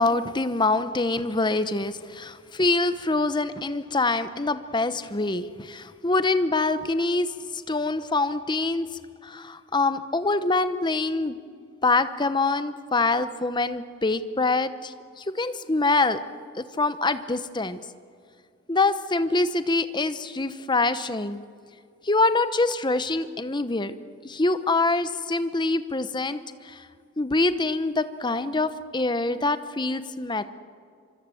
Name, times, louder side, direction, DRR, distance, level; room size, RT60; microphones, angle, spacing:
voice 1, 0.0-8.9 9.2-11.4 11.8-16.2 16.6-17.8 18.7-21.4 22.0-23.9 24.2-26.9 27.2-30.4, left 3 dB, 20° left, 12 dB, 0.8 m, -25 dB
25.5 x 24.5 x 7.7 m, 2.3 s
head